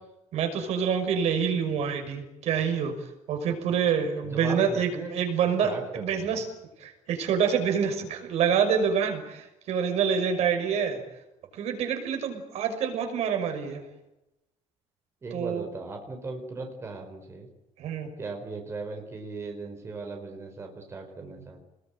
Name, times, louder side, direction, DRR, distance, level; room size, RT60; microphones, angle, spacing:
voice 1, 0.3-2.9 3.3-6.4 6.8-11.0 11.6-13.8 15.3-15.7 17.8-18.1, right 7 dB, 65° right, 6 dB, 6.1 m, -27 dB
voice 2, 4.2-5.1 5.6-6.4 15.2-17.5 18.2-21.6, right 3 dB, 20° right, 3 dB, 4.4 m, -37 dB
28.0 x 21.0 x 9.0 m, 0.91 s
cardioid pair, 170°, 12 cm